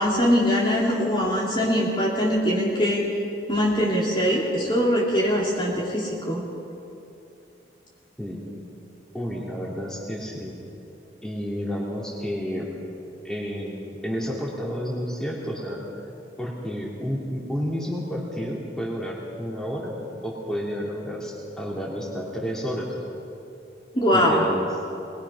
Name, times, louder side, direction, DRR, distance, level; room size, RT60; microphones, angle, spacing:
voice 1, 0.0-3.0 3.5-6.5 23.9-24.4, equal, 25° left, -5 dB, 2.8 m, -22 dB
voice 2, 9.1-10.5 11.2-12.7 13.2-15.8 16.4-20.0 20.2-22.9 24.1-24.7, equal, 5° left, -4 dB, 3.2 m, -30 dB
23.5 x 20.5 x 5.7 m, 2.6 s
head